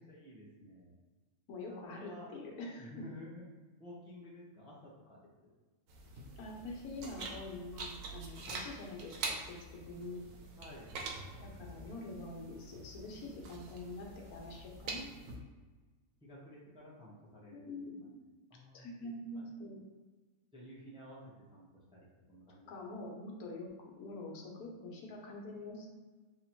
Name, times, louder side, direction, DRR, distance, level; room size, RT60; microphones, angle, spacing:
voice 1, 0.1-0.9 1.7-2.3 2.8-3.5 3.8-5.5 10.6-10.9 14.4-15.0 16.2-18.1 18.5-18.9 19.3-19.4 20.5-22.7, left 1 dB, 5° right, -6 dB, 0.6 m, -53 dB
voice 2, 1.5-2.9 6.4-10.2 11.4-15.3 17.5-18.3 18.7-19.9 22.7-23.7 24.0-25.9, left 2 dB, 85° left, 0 dB, 1.3 m, -45 dB
sound 1, 5.9-15.4, right 3 dB, 70° right, 1.0 m, -45 dB
3.1 x 2.8 x 4.3 m, 1.3 s
omnidirectional pair, 1.5 m